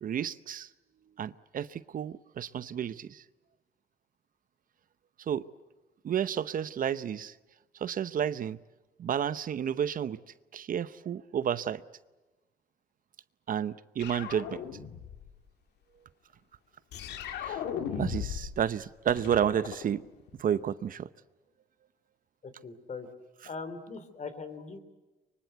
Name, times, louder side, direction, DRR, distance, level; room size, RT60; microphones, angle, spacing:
voice 1, 0.0-0.7 1.2-3.2 5.3-5.5 6.0-7.3 7.8-8.6 9.0-10.2 10.5-11.8 13.5-14.6 17.4-17.6 17.9-20.0 20.4-21.1, right 9 dB, 55° right, 16 dB, 0.8 m, -31 dB
sound 1, 14.0-15.3 16.9-18.6 18.8-20.5, left 8 dB, 85° left, 1.9 m, -37 dB
voice 2, 22.4-23.1 23.4-24.8, left 4 dB, 45° left, 11 dB, 3.5 m, -41 dB
24.0 x 23.5 x 8.1 m, 1.1 s
cardioid pair, 80°, 17 cm